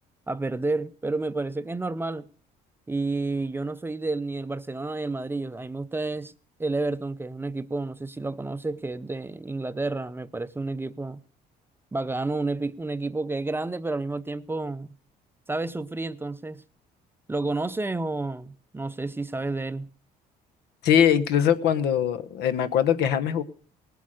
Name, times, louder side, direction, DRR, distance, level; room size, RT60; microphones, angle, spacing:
voice 1, 0.3-2.3 2.9-6.3 6.6-11.2 11.9-14.9 15.5-16.6 17.3-19.9, right 2 dB, 15° right, 0.5 m, -30 dB
voice 2, 20.8-23.4, left 9 dB, 80° left, 1.1 m, -22 dB
18.5 x 8.3 x 6.3 m
cardioid pair, 110°, 17 cm